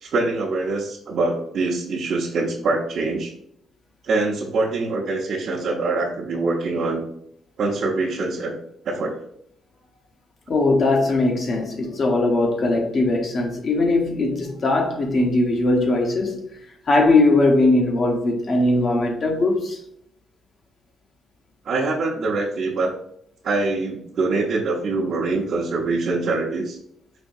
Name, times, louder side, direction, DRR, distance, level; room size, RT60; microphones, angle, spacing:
voice 1, 0.0-3.3 4.0-7.0 7.6-8.5 8.8-9.2 21.6-22.9 23.4-26.8, right 3 dB, 60° right, 0.7 m, -24 dB
voice 2, 10.5-16.5 16.9-19.8, left 2 dB, 50° left, 0.9 m, -20 dB
5.0 x 2.7 x 2.6 m
cardioid pair, 90°, 0 cm